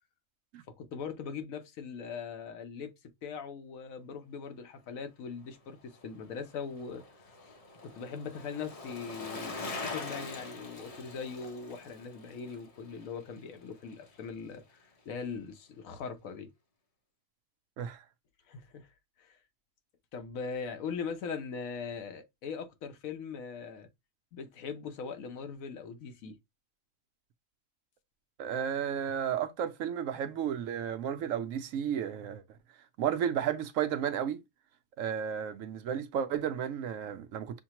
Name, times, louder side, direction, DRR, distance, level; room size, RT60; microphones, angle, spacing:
voice 1, 0.8-2.9 3.2-7.0 7.4-7.5 7.8-16.5 18.5-18.9 19.2-19.4 20.1-23.9 24.3-26.4, left 5 dB, 80° left, 1.1 m, -40 dB
Bicycle, 5.8-14.2 14.5-14.6, left 3 dB, 35° left, 0.6 m, -44 dB
voice 2, 28.4-32.4 33.0-34.4 35.0-37.6, right 9 dB, 75° right, 0.9 m, -33 dB
6.3 x 2.2 x 2.9 m
omnidirectional pair, 1.4 m